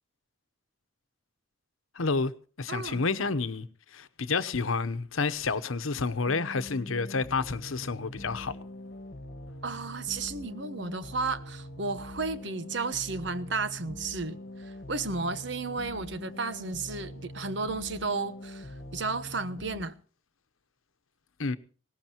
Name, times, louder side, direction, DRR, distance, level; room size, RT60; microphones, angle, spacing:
voice 1, 1.9-2.3 2.6-8.6 21.4-21.6, left 4 dB, 90° left, 0.9 m, -29 dB
voice 2, 2.7-3.0 9.6-19.9, right 4 dB, 60° right, 1.1 m, -33 dB
sound 1, 6.3-19.8, left 1 dB, 50° left, 1.8 m, -43 dB
20.5 x 18.5 x 3.0 m
head